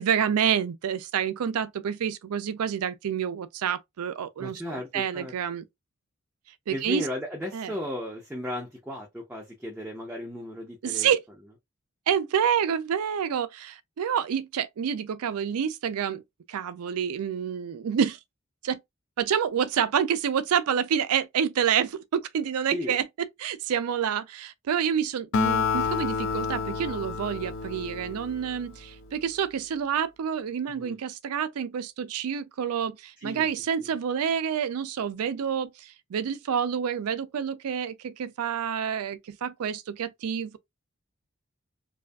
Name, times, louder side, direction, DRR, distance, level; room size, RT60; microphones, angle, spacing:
voice 1, 0.0-5.6 6.7-7.0 7.5-7.7 10.8-11.2 12.1-16.2 16.5-18.2 18.6-18.8 19.2-40.6, right 8 dB, 85° right, 0.4 m, -28 dB
voice 2, 4.4-5.3 6.7-11.1 22.7-23.0 30.7-31.0 33.2-33.5 33.8-33.9, left 1 dB, 5° right, 0.5 m, -35 dB
Acoustic guitar, 25.3-28.9, left 5 dB, 60° left, 0.4 m, -29 dB
2.6 x 2.4 x 2.2 m
head